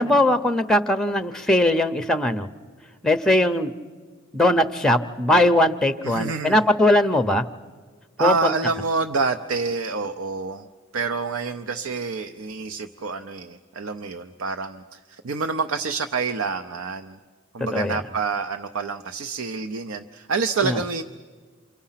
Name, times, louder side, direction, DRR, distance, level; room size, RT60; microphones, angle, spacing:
voice 1, 0.0-2.5 3.0-3.7 4.3-7.4 8.2-8.5 17.7-18.0 20.6-20.8, left 1 dB, 5° left, 10 dB, 0.6 m, -20 dB
voice 2, 6.0-6.6 8.2-10.7 10.9-17.2 17.5-21.0, right 4 dB, 85° right, 7 dB, 0.7 m, -27 dB
28.0 x 25.5 x 5.8 m, 1.5 s
head